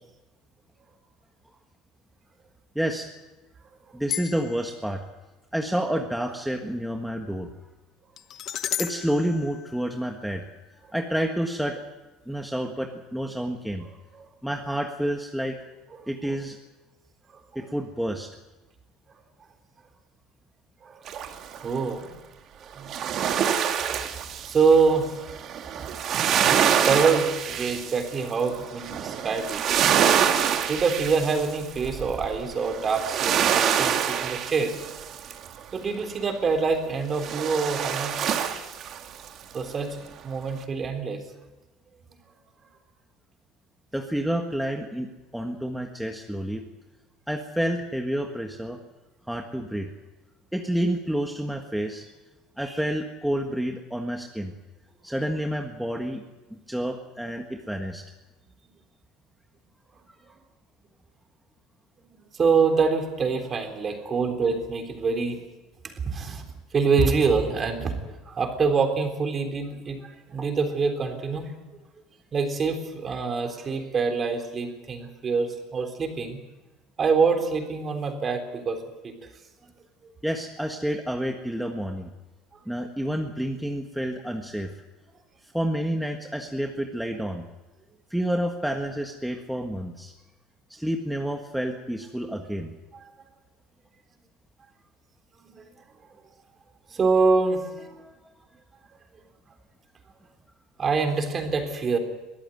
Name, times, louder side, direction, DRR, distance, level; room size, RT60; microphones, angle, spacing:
voice 1, 2.7-3.1 3.9-5.0 5.5-7.5 8.8-10.4 10.9-11.8 12.3-13.8 14.4-15.5 16.1-16.6 17.5-18.3 43.9-45.1 45.3-46.6 47.3-48.8 49.3-49.9 50.5-52.0 52.6-54.5 55.0-56.2 56.5-58.0 80.2-82.1 82.7-84.7 85.5-87.4 88.1-90.1 90.7-92.7 97.9-98.1, equal, ahead, 3 dB, 1.5 m, -29 dB
sound 1, 4.1-4.7 8.2-10.4, left 11 dB, 50° left, 1.0 m, -34 dB
voice 2, 20.8-21.4 21.6-22.1 22.6-22.9 23.9-24.0 24.5-25.1 25.7-25.9 26.9-29.6 30.7-34.8 35.7-38.4 39.5-41.2 62.3-65.4 65.8-66.4 66.7-70.0 70.3-71.5 72.3-76.4 77.0-78.8 79.0-79.1 95.4-95.7 96.9-97.7 100.8-102.0, right 5 dB, 30° right, 6 dB, 3.6 m, -25 dB
sound 2, 21.1-21.7 22.8-35.6 37.2-39.3 39.7-39.8, right 8 dB, 50° right, 2.0 m, -26 dB
23.0 x 14.0 x 9.1 m, 1.1 s
supercardioid pair, 120°, 0 cm